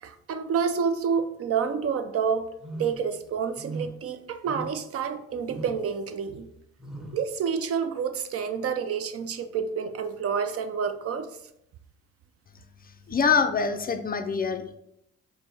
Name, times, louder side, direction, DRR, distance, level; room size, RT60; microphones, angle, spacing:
voice 1, 0.0-2.5 2.8-6.5 7.1-11.3, right 6 dB, 50° right, 0.4 m, -28 dB
sound 1, 2.6-3.1 3.6-4.0 4.4-4.9 5.5-5.9 6.8-7.3, right 2 dB, ahead, 0.7 m, -38 dB
voice 2, 13.1-14.8, left 5 dB, 30° left, 0.4 m, -25 dB
5.8 x 2.1 x 3.3 m
cardioid pair, 90°, 30 cm